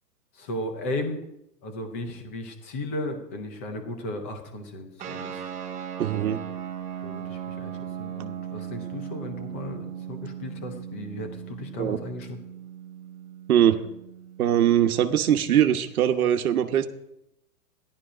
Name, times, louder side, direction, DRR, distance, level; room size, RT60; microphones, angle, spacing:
voice 1, 0.3-1.2 1.6-5.5 7.0-12.4, left 1 dB, 10° left, 5 dB, 0.5 m, -35 dB
sound 1, 5.0-15.9, right 9 dB, 15° right, 1.3 m, -38 dB
voice 2, 6.0-6.4 11.8-12.0 13.5-13.8 14.4-16.9, right 10 dB, 60° right, 8 dB, 1.2 m, -21 dB
15.0 x 11.5 x 5.0 m, 0.84 s
hypercardioid pair, 160°, 48 cm